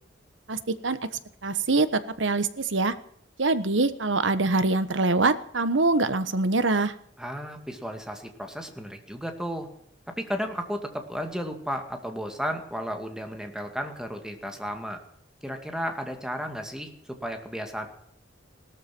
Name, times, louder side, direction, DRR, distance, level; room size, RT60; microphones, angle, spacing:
voice 1, 0.5-1.0 1.4-2.9 3.4-6.9, right 3 dB, 70° right, 13 dB, 1.3 m, -24 dB
voice 2, 7.2-9.7 10.2-15.0 15.4-16.9 17.2-17.9, equal, 5° right, 4 dB, 2.3 m, -33 dB
17.5 x 13.0 x 6.1 m, 0.64 s
head